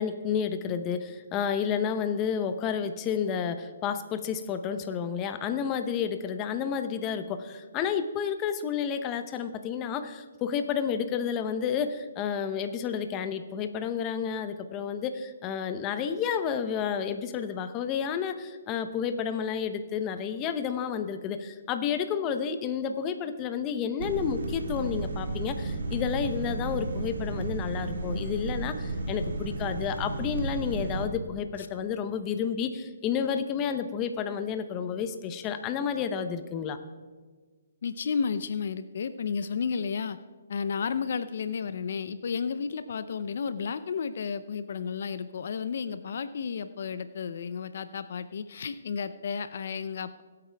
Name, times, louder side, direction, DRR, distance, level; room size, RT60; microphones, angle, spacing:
voice 1, 0.0-36.8, left 7 dB, 20° left, 9 dB, 0.8 m, -31 dB
sound 1, 24.0-31.1, right 2 dB, 75° right, 1.8 m, -33 dB
voice 2, 37.8-40.2 40.5-50.2, left 6 dB, 60° left, 13 dB, 0.5 m, -32 dB
20.0 x 8.5 x 3.4 m, 1.4 s
hypercardioid pair, 155°, 0 cm